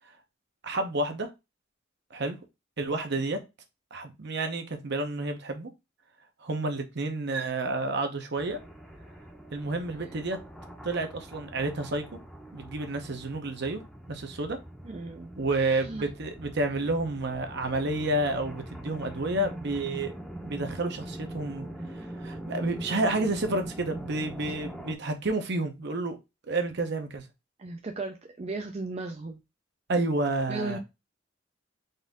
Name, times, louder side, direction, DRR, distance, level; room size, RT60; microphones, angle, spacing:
voice 1, 0.6-1.3 2.1-2.4 2.8-3.4 3.9-5.7 6.4-8.6 9.5-10.4 10.8-12.0 12.5-13.8 14.1-14.6 15.4-20.1 20.4-21.7 22.2-26.2 26.5-27.2 29.9-30.8, right 2 dB, 60° right, 0.8 m, -30 dB
sound 1, 8.4-25.0, right 1 dB, ahead, 0.7 m, -42 dB
voice 2, 14.8-16.1 27.6-29.4 30.5-30.8, right 3 dB, 35° right, 0.5 m, -36 dB
4.1 x 2.6 x 3.5 m
head